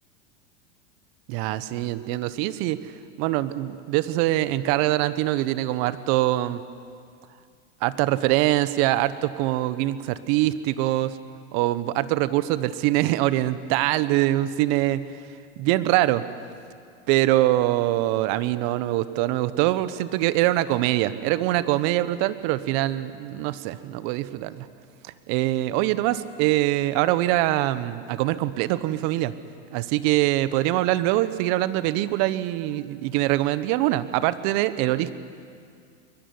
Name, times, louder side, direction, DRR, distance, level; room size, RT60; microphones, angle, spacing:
voice 1, 1.3-2.8 3.2-6.6 7.8-11.2 11.5-15.0 15.6-16.2 17.1-24.7 25.3-29.3 29.7-35.1, right 15 dB, 55° right, 14 dB, 1.4 m, -23 dB
22.0 x 21.5 x 9.7 m, 2.2 s
hypercardioid pair, 105°, 34 cm